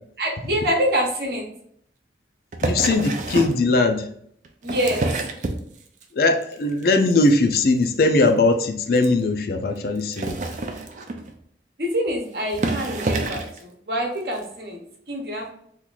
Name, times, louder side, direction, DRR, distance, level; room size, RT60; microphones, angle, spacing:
voice 1, 0.2-1.4 4.6-5.1 11.8-14.8 15.1-15.5, equal, 60° right, 1 dB, 0.9 m, -25 dB
sound 1, 2.5-3.6 4.4-6.0 6.4-6.8 7.1-7.3 7.5-7.6 7.8-7.9 8.3-8.4 9.0-9.1 10.0-11.4 12.1-12.2 12.5-13.6 14.4-14.5, right 2 dB, 45° right, 0.4 m, -27 dB
voice 2, 2.6-4.1 6.1-10.4, left 2 dB, 55° left, 6 dB, 0.4 m, -20 dB
2.9 x 2.5 x 3.8 m, 0.67 s
head